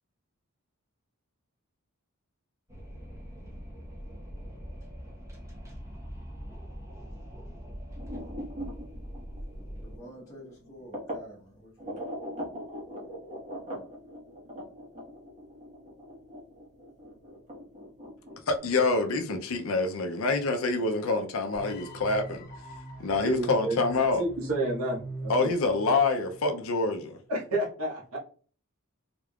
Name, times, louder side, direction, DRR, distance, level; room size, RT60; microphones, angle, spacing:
Wind, 2.7-10.0, equal, 15° right, 1.0 m, -42 dB
sound 1, 8.0-11.3 11.8-18.6, equal, 35° right, 1.4 m, -41 dB
voice 1, 9.8-12.0, equal, 15° left, 1.0 m, -48 dB
voice 2, 18.5-22.4 23.0-24.2 25.3-27.2, left 3 dB, 70° left, 0.5 m, -26 dB
sound 2, 21.6-26.7, right 2 dB, 45° left, 0.9 m, -42 dB
voice 3, 23.2-23.8 24.2-25.5 27.3-28.2, right 2 dB, 75° right, 1.3 m, -30 dB
3.8 x 3.5 x 2.3 m
head